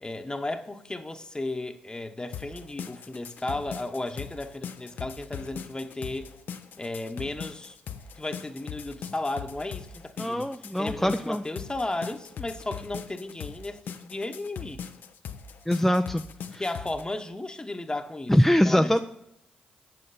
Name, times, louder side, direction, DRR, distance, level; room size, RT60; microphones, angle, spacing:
voice 1, 0.0-6.3 6.8-7.8 8.2-14.8 16.6-19.0, left 2 dB, 25° left, 1.0 m, -34 dB
sound 1, 2.3-17.0, left 7 dB, 70° left, 0.6 m, -40 dB
voice 2, 10.2-11.4 15.7-16.2 16.5-16.6 18.3-19.0, equal, 5° left, 0.5 m, -22 dB
7.7 x 7.5 x 4.1 m
hypercardioid pair, 40°, 3 cm